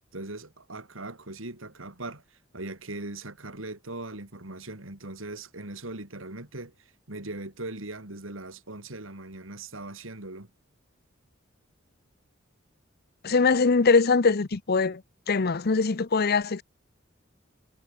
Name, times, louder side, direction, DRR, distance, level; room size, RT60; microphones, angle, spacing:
voice 1, 0.1-10.5, right 2 dB, 85° right, 4.0 m, -40 dB
voice 2, 13.2-15.0 15.3-16.6, left 4 dB, 50° left, 0.7 m, -22 dB
head